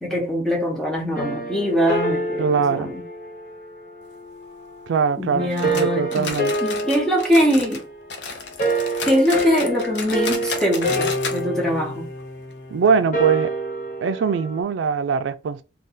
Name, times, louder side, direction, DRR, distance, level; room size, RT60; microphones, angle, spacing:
voice 1, 0.0-3.0 5.2-6.3 6.6-7.8 9.0-12.1, equal, 5° left, 1.0 m, -22 dB
sound 1, 1.1-4.1 5.4-14.6, right 1 dB, 45° left, 0.8 m, -27 dB
voice 2, 2.4-2.9 4.9-6.5 12.7-13.5 14.0-15.6, right 5 dB, 90° right, 0.3 m, -22 dB
sound 2, 5.6-7.8 8.1-11.4 11.7-11.8 12.2-12.3 12.9-13.0, left 4 dB, 80° left, 0.6 m, -32 dB
2.6 x 2.4 x 3.6 m
head